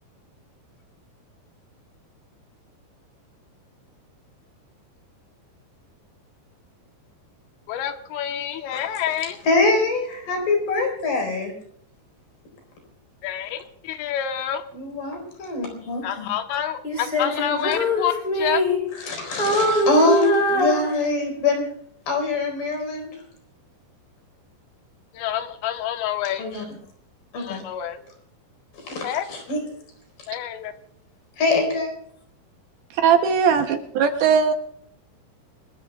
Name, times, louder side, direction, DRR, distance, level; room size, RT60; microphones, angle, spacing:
voice 1, 7.7-9.4 13.2-14.6 16.0-18.6 25.1-26.5 27.4-28.0 29.0-29.3 30.3-30.7, left 10 dB, 85° left, 6 dB, 3.3 m, -28 dB
voice 2, 9.4-11.5 14.7-16.3 19.1-21.7 22.1-23.2 26.4-26.6 27.3-27.6 28.8-29.6 31.4-31.9, left 3 dB, 65° left, 2 dB, 6.2 m, -23 dB
Female singing, 16.8-19.1 19.4-21.4, equal, 15° left, 4.8 m, -23 dB
voice 3, 32.9-34.5, right 7 dB, 75° right, 6 dB, 2.5 m, -19 dB
27.5 x 20.0 x 2.3 m, 0.65 s
omnidirectional pair, 4.9 m